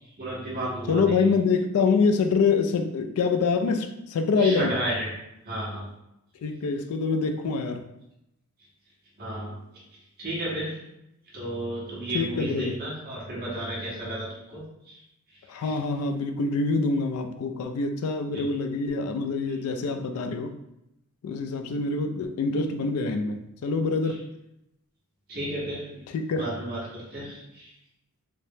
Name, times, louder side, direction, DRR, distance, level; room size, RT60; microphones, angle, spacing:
voice 1, 0.2-1.4 4.4-5.1 5.4-5.9 9.2-9.8 10.2-10.8 11.3-15.0 15.6-15.8 18.3-18.5 24.0-24.1 25.3-26.1 26.3-27.7, right 1 dB, 45° right, -6 dB, 1.0 m, -33 dB
voice 2, 0.9-4.8 6.4-7.8 12.1-12.8 15.5-20.5 21.2-24.2 26.1-26.5, left 4 dB, 70° left, 6 dB, 0.3 m, -25 dB
3.2 x 2.1 x 2.7 m, 0.85 s
head